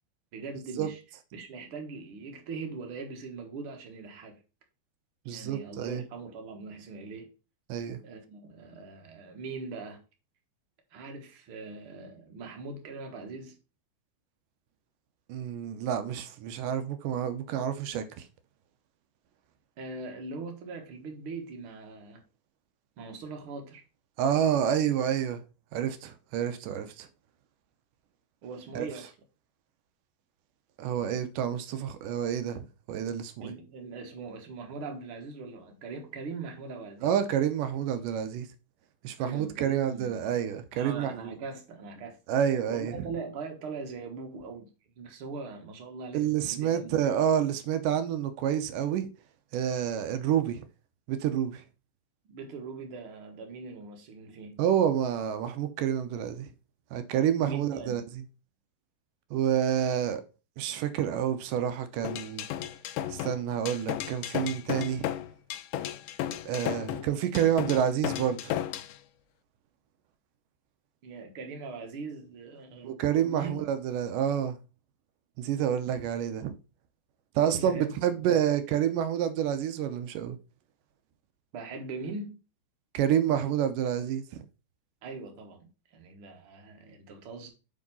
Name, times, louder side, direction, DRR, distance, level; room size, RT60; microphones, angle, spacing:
voice 1, 0.3-1.0 1.3-4.4 5.3-7.3 8.0-10.0 10.9-13.5 19.8-22.2 23.0-23.8 28.4-29.1 33.4-37.2 39.2-40.2 40.7-42.2 42.7-44.7 45.0-47.1 52.3-54.6 57.4-58.1 71.0-73.6 77.4-77.9 78.2-78.3 81.5-82.4 85.0-87.5, right 4 dB, 55° right, 1.5 m, -41 dB
voice 2, 5.3-6.0 7.7-8.0 15.3-18.0 24.2-25.4 25.7-27.1 28.8-28.9 30.8-33.5 37.0-38.5 39.0-41.1 42.3-42.9 46.1-49.1 49.5-50.6 51.1-51.6 54.6-56.5 56.9-58.0 59.3-60.2 60.6-62.5 63.1-65.1 66.5-68.6 72.8-74.6 75.4-76.5 77.4-80.4 82.9-84.4, right 9 dB, 75° right, 2.1 m, -28 dB
sound 1, 62.0-68.9, left 12 dB, 80° left, 2.0 m, -34 dB
6.2 x 4.7 x 5.3 m
omnidirectional pair, 4.3 m